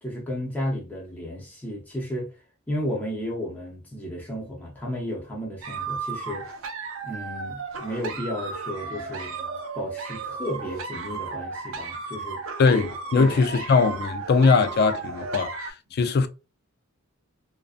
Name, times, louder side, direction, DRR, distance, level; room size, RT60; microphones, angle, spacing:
voice 1, 0.0-2.4 2.7-6.5 7.0-12.4 13.1-13.3 15.9-16.0, equal, 10° left, 0.6 m, -33 dB
sound 1, 5.6-15.7, right 4 dB, 70° right, 0.5 m, -34 dB
voice 2, 12.6-16.3, left 4 dB, 50° left, 0.3 m, -21 dB
2.5 x 2.2 x 2.4 m
head